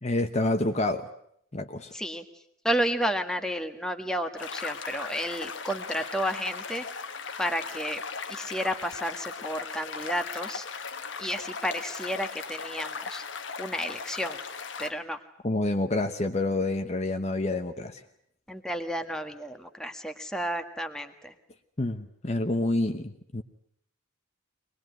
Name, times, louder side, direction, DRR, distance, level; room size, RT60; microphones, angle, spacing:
voice 1, 0.0-1.1 1.5-1.9 15.4-18.0 21.8-23.4, left 2 dB, 35° left, 6 dB, 1.1 m, -28 dB
voice 2, 1.9-2.2 2.6-6.8 7.4-8.0 8.3-10.7 11.2-13.2 13.6-14.4 14.8-15.2 18.5-21.3, equal, 5° left, 5 dB, 1.5 m, -31 dB
sound 1, 4.4-14.9, left 5 dB, 65° left, 1.4 m, -38 dB
24.0 x 20.5 x 9.3 m, 0.69 s
head